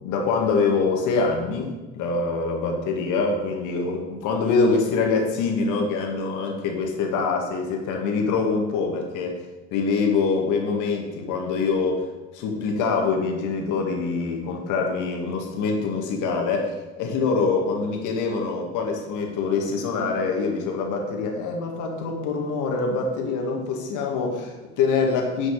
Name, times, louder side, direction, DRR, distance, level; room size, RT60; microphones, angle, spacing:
voice 1, 0.0-9.4 9.7-12.1 12.3-25.5, left 4 dB, 65° left, 1 dB, 2.1 m, -24 dB
10.0 x 5.1 x 6.6 m, 1.2 s
hypercardioid pair, 55°, 33 cm